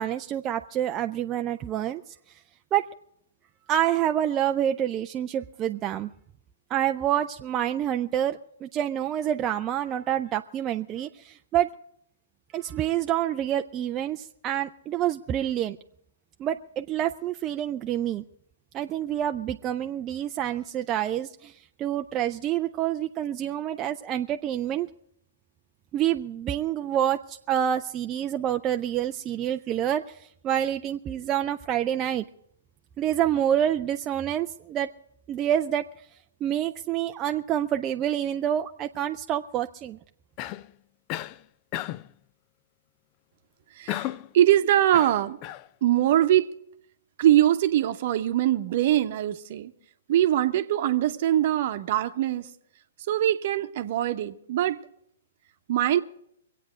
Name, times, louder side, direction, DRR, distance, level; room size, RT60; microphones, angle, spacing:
voice 1, 0.0-2.1 2.7-2.8 3.7-6.1 6.7-11.7 12.5-15.8 16.4-18.2 18.7-21.5 21.8-24.9 25.9-32.2 33.0-34.9 35.3-35.8 36.4-40.0, right 11 dB, 25° right, 0.4 m, -27 dB
Cough, 40.4-40.7 41.1-41.4 41.7-42.1 43.9-44.3 44.9-45.7, left 14 dB, 35° left, 0.5 m, -33 dB
voice 2, 43.7-45.4 45.8-46.5 47.2-49.7 50.1-52.5 53.1-54.8 55.7-56.0, right 12 dB, 50° right, 0.9 m, -22 dB
24.5 x 8.5 x 5.1 m
figure-of-eight pair, 120°, 0 cm